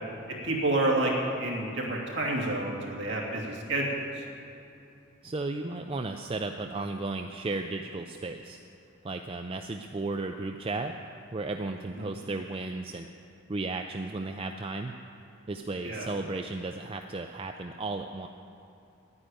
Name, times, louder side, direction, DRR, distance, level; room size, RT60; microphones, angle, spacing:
voice 1, 0.4-1.1 1.4-4.2 12.0-12.1 15.8-16.1, right 2 dB, 55° right, -2 dB, 2.7 m, -29 dB
voice 2, 5.2-8.6 9.0-11.0 11.3-13.1 13.5-14.9 15.5-18.3, right 3 dB, 25° right, 5 dB, 0.4 m, -34 dB
11.5 x 9.7 x 9.0 m, 2.8 s
head